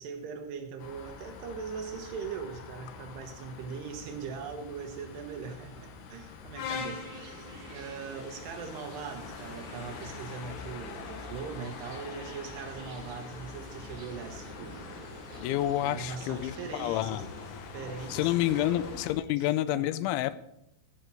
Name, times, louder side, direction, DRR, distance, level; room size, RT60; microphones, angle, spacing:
voice 1, 0.0-14.9 15.8-17.2 17.7-19.0 19.4-19.9, right 5 dB, 70° right, 5 dB, 3.0 m, -41 dB
sound 1, 0.8-19.1, left 5 dB, 70° left, 2.9 m, -44 dB
sound 2, 6.8-17.5, right 4 dB, 55° right, 4.1 m, -49 dB
voice 2, 15.4-17.3 18.1-20.4, left 14 dB, 85° left, 15 dB, 3.0 m, -29 dB
14.0 x 5.8 x 7.5 m, 0.82 s
omnidirectional pair, 5.3 m